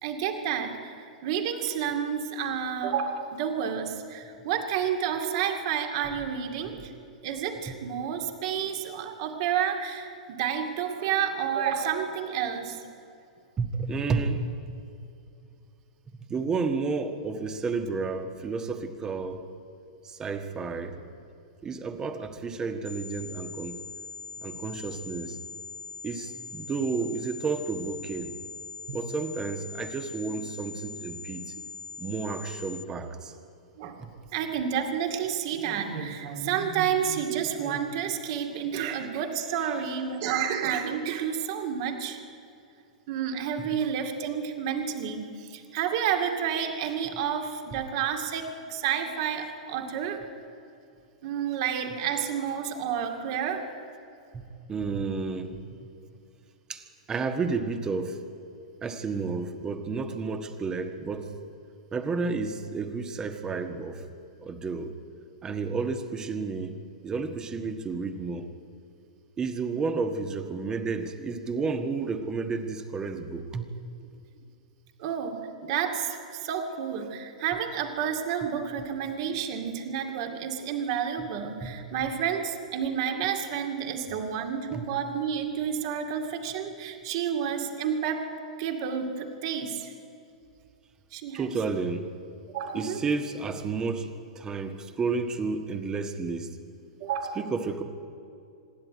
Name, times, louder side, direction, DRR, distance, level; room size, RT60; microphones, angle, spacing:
voice 1, 0.0-6.9 7.2-12.8 24.5-24.6 28.9-29.0 30.3-30.4 32.0-32.1 33.8-34.0 34.3-42.2 43.1-50.2 51.2-53.7 75.0-88.3 88.6-89.9 91.1-91.5 92.5-93.0 97.0-97.4, right 8 dB, 45° right, 4 dB, 2.3 m, -30 dB
voice 2, 13.6-14.5 16.3-19.4 20.0-21.0 21.6-23.8 24.4-25.4 26.0-28.3 28.9-31.5 32.0-33.3 34.0-34.1 43.6-43.7 54.3-55.6 56.7-58.2 58.8-61.3 61.9-64.0 64.4-64.9 65.4-66.8 67.0-68.5 69.4-73.7 81.2-81.3 81.6-81.8 84.7-84.9 91.3-92.1 92.7-96.6 97.3-97.8, right 4 dB, 20° right, 7 dB, 1.5 m, -31 dB
sound 1, 22.8-32.8, left 4 dB, 65° left, 1.1 m, -42 dB
25.5 x 11.0 x 9.4 m, 2.6 s
figure-of-eight pair, 100°, 4 cm